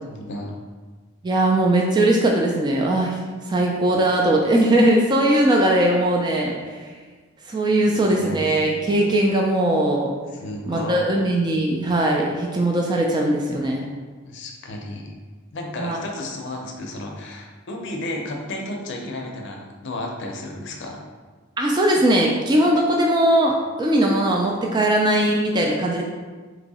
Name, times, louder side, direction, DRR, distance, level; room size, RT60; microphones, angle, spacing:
voice 1, 0.0-0.6 7.7-8.4 10.4-11.0 14.3-15.1 15.5-21.0, left 1 dB, 60° left, 1 dB, 0.5 m, -33 dB
voice 2, 1.2-3.2 3.5-6.5 6.8-6.9 7.5-10.1 10.7-13.9 15.8-16.0 21.6-26.0, right 1 dB, 20° right, -1 dB, 0.3 m, -19 dB
2.9 x 2.7 x 4.1 m, 1.4 s
head